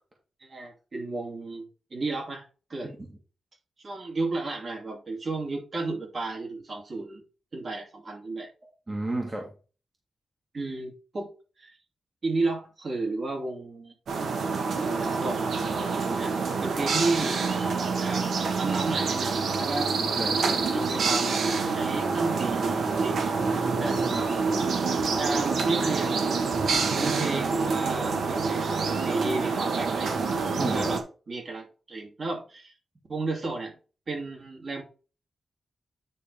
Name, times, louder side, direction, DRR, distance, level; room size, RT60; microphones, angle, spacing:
voice 1, 0.4-2.4 2.7-2.9 3.8-7.2 7.5-8.5 10.5-11.3 11.6-11.8 12.2-13.9 14.8-15.5 15.7-16.3 16.6-17.4 17.7-19.9 20.7-21.4 21.7-23.3 23.8-24.4 25.2-26.4 26.9-30.2 30.6-32.7 33.1-33.8 34.1-34.8, right 3 dB, 45° right, 2.7 m, -33 dB
voice 2, 8.9-9.5 20.0-20.7 23.8-24.3 30.6-30.9, right 2 dB, 25° right, 1.8 m, -33 dB
sound 1, 14.1-31.0, right 4 dB, 80° right, 1.6 m, -27 dB
9.7 x 3.7 x 5.0 m
wide cardioid pair, 145°, 0 cm